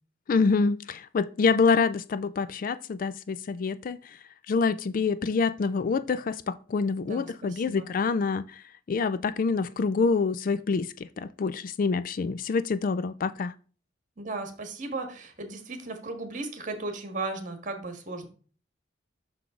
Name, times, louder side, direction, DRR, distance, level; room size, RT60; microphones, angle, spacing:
voice 1, 0.3-4.0 4.5-8.6 8.9-13.5, left 4 dB, 45° left, 0.3 m, -26 dB
voice 2, 7.0-7.9 14.2-18.3, right 3 dB, 40° right, 1.6 m, -36 dB
6.1 x 5.9 x 3.6 m
head